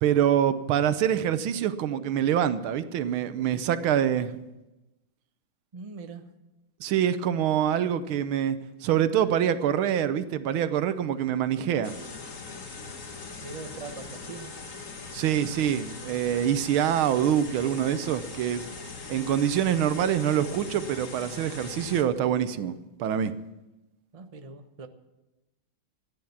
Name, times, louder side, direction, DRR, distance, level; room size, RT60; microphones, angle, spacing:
voice 1, 0.0-4.4 6.8-11.9 15.1-18.6 19.1-22.7 23.0-23.3, right 10 dB, 75° right, 13 dB, 1.6 m, -25 dB
voice 2, 5.7-6.3 13.4-14.6 24.1-24.9, right 4 dB, 50° right, 7 dB, 0.4 m, -41 dB
sound 1, 11.8-22.0, left 4 dB, 40° left, 1.6 m, -41 dB
14.5 x 10.0 x 7.2 m, 0.99 s
omnidirectional pair, 2.3 m